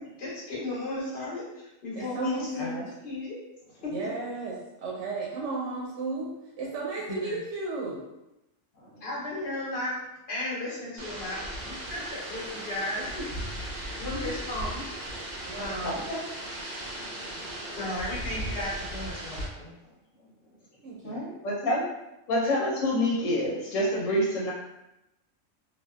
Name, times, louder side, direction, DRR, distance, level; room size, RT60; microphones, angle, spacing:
voice 1, 0.2-2.7 3.0-3.4 3.8-3.9 7.1-7.4 9.0-9.9 10.3-13.1 14.0-14.8 15.5-16.0 17.7-19.7, left 2 dB, 55° left, -6 dB, 1.1 m, -34 dB
voice 2, 2.0-2.7 3.9-8.0 15.5-16.0 20.8-21.2, right 3 dB, 70° right, -3 dB, 0.9 m, -34 dB
sound 1, 11.0-19.5, right 1 dB, 55° right, 0.5 m, -37 dB
voice 3, 15.8-16.2 21.1-21.8 22.3-24.5, left 1 dB, 85° left, -4 dB, 1.1 m, -27 dB
2.5 x 2.2 x 2.2 m, 0.92 s
omnidirectional pair, 1.3 m